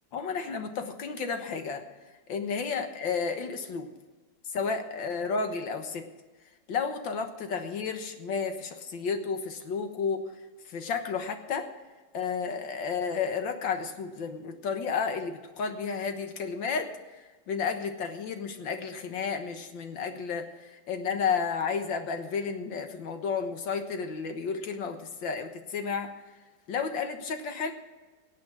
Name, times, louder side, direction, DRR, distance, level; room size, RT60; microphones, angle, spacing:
voice 1, 0.1-1.8 2.3-3.9 4.5-6.1 6.7-10.2 10.7-11.7 12.1-16.9 17.5-26.1 26.7-27.7, left 5 dB, 70° left, 6 dB, 2.0 m, -32 dB
17.5 x 8.4 x 6.1 m, 1.3 s
omnidirectional pair, 2.2 m